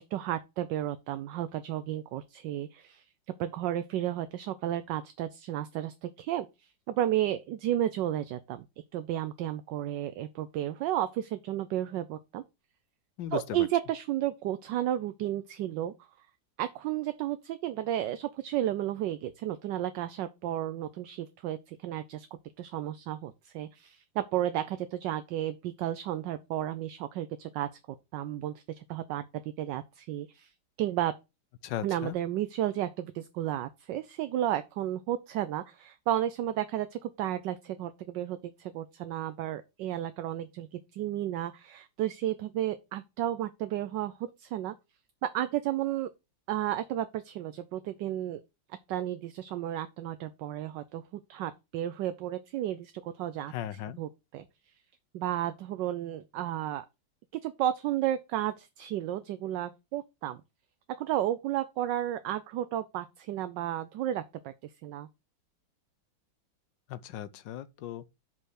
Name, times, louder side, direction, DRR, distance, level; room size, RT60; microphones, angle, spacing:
voice 1, 0.0-3.0 3.4-8.6 8.9-12.4 13.3-16.3 16.6-22.3 22.6-27.8 28.1-30.5 30.8-31.2 31.8-44.7 45.2-46.1 46.5-48.4 48.9-51.0 51.3-53.5 54.0-54.5 55.1-56.8 57.3-60.4 61.0-65.1, right 12 dB, 75° right, 1.2 m, -33 dB
voice 2, 13.2-13.7 31.6-32.1 53.5-54.0 66.9-68.1, left 11 dB, 75° left, 1.3 m, -37 dB
5.6 x 5.4 x 6.2 m
omnidirectional pair, 2.1 m